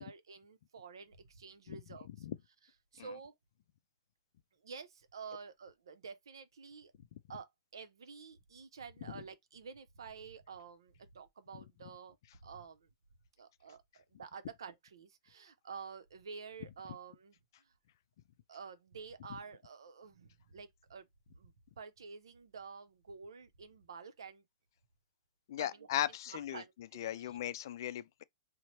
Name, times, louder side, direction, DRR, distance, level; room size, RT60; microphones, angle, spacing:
voice 1, 0.0-2.3 2.9-3.3 4.6-6.9 7.3-12.2 12.4-12.9 13.4-17.7 18.5-21.0 21.3-24.4 25.6-25.9 26.3-27.4, right 5 dB, 80° right, 0.6 m, -50 dB
voice 2, 25.5-26.6 27.0-28.2, left 11 dB, 60° left, 0.4 m, -37 dB
2.8 x 2.1 x 3.0 m
hypercardioid pair, 130°, 2 cm